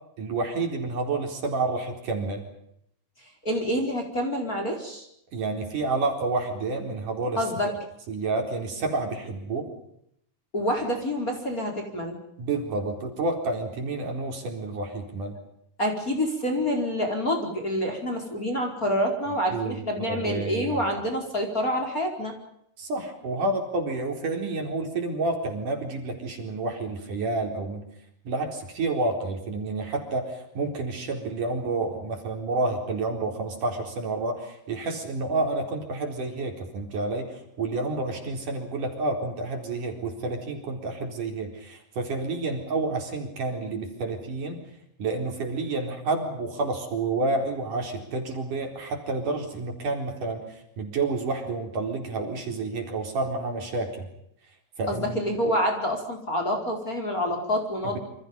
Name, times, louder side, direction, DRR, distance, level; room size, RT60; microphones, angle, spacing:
voice 1, 0.2-2.4 5.3-7.7 8.1-9.7 12.4-15.4 19.5-20.8 22.8-27.8 28.3-44.7 45.0-54.1 54.8-55.2 57.8-58.0, right 3 dB, 55° right, 3 dB, 5.6 m, -29 dB
voice 2, 3.4-5.1 7.4-7.8 10.5-12.2 15.8-22.4 54.9-58.0, equal, 20° left, 2 dB, 4.9 m, -27 dB
28.5 x 27.0 x 5.4 m, 0.73 s
omnidirectional pair, 4.5 m